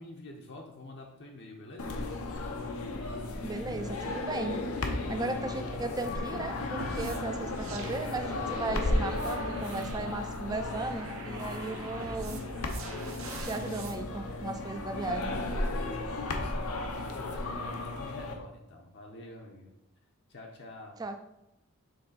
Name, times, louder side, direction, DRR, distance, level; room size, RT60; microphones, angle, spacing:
voice 1, 0.0-2.0 15.2-19.7 20.3-21.0, left 1 dB, 50° left, 0 dB, 0.7 m, -47 dB
Laptop Shut & Open, 1.8-18.3, left 2 dB, 80° left, 0.7 m, -34 dB
voice 2, 3.4-4.6 5.1-12.4 13.4-15.4 21.0-21.2, right 3 dB, 15° right, 6 dB, 0.3 m, -36 dB
Sea sick, 6.8-14.0, right 2 dB, 70° right, 0.8 m, -43 dB
6.6 x 3.7 x 3.9 m, 0.86 s
head